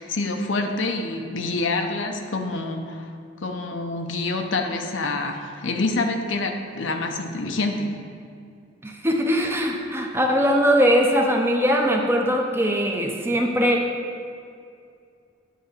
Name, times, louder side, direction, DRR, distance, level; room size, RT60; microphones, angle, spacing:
voice 1, 0.0-3.1 3.4-7.9, left 3 dB, 75° left, 4 dB, 0.8 m, -27 dB
voice 2, 8.8-13.8, equal, 10° right, 1 dB, 0.7 m, -21 dB
9.3 x 3.9 x 6.6 m, 2.4 s
head